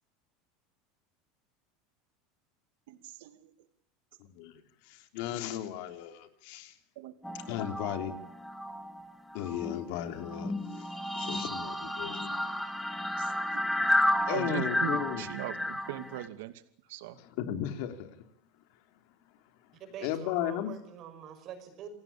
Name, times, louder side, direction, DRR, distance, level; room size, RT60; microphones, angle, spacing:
voice 1, 2.9-3.5 7.0-7.1 11.5-11.6 12.3-12.4 12.9-13.6 14.3-16.5 16.9-17.2, right 13 dB, 75° right, 10 dB, 2.5 m, -40 dB
voice 2, 4.2-4.6 4.9-6.7 7.5-8.1 9.3-12.3 14.3-15.2 17.4-18.2 20.0-20.7, left 11 dB, 55° left, 8 dB, 3.2 m, -35 dB
sound 1, 7.2-9.0 9.3-16.3, left 1 dB, ahead, 1.8 m, -32 dB
voice 3, 19.7-21.9, right 9 dB, 35° right, 7 dB, 5.8 m, -45 dB
29.0 x 18.5 x 8.7 m, 0.65 s
supercardioid pair, 175°, 0 cm